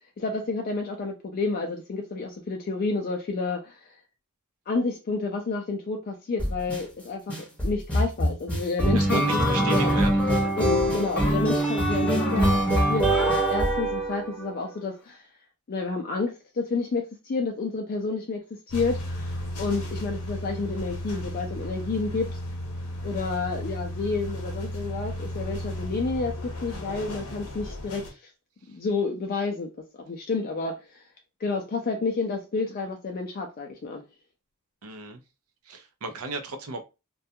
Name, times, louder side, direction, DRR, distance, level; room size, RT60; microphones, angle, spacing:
voice 1, 0.2-3.8 4.7-10.0 10.5-12.6 12.9-15.2 15.7-22.3 23.0-28.2 28.7-29.7 30.1-31.0 31.4-34.0, left 3 dB, 40° left, 0.4 m, -30 dB
sound 1, 6.4-6.8 7.3-14.5, right 1 dB, 5° left, 0.8 m, -23 dB
voice 2, 8.9-10.2 34.8-35.2 35.7-36.8, right 3 dB, 80° right, 0.6 m, -35 dB
sound 2, 18.7-28.1, left 1 dB, 75° left, 0.9 m, -34 dB
2.3 x 2.2 x 2.7 m
head